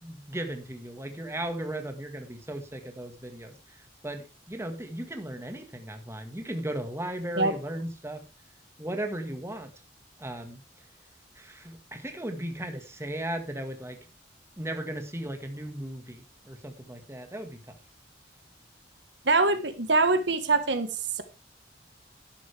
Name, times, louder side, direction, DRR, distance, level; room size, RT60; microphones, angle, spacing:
voice 1, 0.0-8.2 8.8-9.7 10.2-10.6 11.3-14.0 14.6-17.8, right 1 dB, 15° right, 6 dB, 1.8 m, -36 dB
voice 2, 19.2-20.9 21.2-21.3, right 3 dB, 70° right, 9 dB, 1.5 m, -23 dB
11.5 x 11.5 x 3.5 m, 0.29 s
head